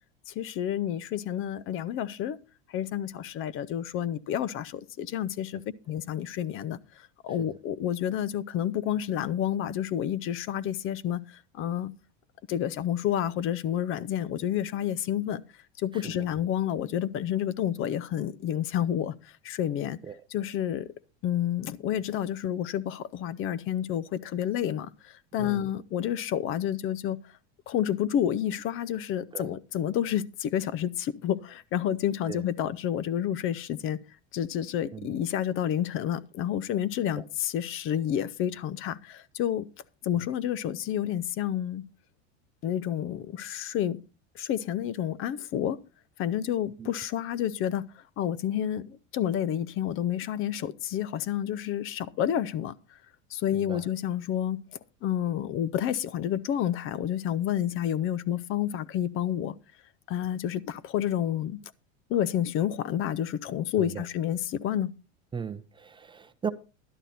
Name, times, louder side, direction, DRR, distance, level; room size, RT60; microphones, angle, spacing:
voice 1, 0.3-2.4 2.7-5.6 5.9-6.8 7.2-11.9 12.5-15.4 15.8-19.1 19.4-20.0 20.3-20.9 21.2-27.2 27.7-34.0 34.3-39.7 40.0-41.8 42.6-44.0 44.3-45.8 46.2-47.9 48.2-52.7 53.3-54.6 55.0-59.6 60.1-61.6 62.1-64.9, left 10 dB, 40° left, 0.7 m, -29 dB
voice 2, 15.9-16.3 20.0-20.2 25.4-25.7 29.3-29.5 32.3-32.4 34.9-35.1 37.2-37.3 46.8-46.9 53.5-53.9 63.8-64.0 65.3-66.5, right 6 dB, 15° right, 0.6 m, -37 dB
12.0 x 10.5 x 4.2 m
supercardioid pair, 130°, 33 cm